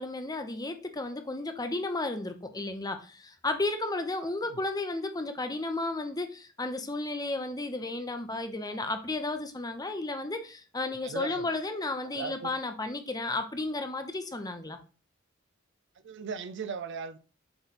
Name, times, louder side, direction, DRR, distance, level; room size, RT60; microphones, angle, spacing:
voice 1, 0.0-14.8, left 2 dB, 20° left, 0.8 m, -33 dB
voice 2, 11.0-11.5 12.1-12.5 16.0-17.2, right 5 dB, 60° right, 0.5 m, -37 dB
8.0 x 3.4 x 4.2 m
head